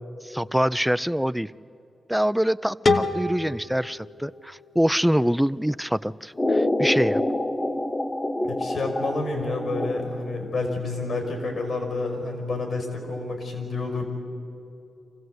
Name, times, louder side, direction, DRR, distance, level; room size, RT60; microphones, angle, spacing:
voice 1, 0.2-1.5 2.1-7.2, equal, 5° right, 16 dB, 0.4 m, -25 dB
sound 1, 2.9-5.7, left 3 dB, 50° left, 1.1 m, -28 dB
sound 2, 6.4-10.4, left 1 dB, 25° left, 1.3 m, -26 dB
voice 2, 8.5-14.0, left 3 dB, 70° left, 3 dB, 5.4 m, -29 dB
26.0 x 15.5 x 8.0 m, 2.8 s
cardioid pair, 70°, 0 cm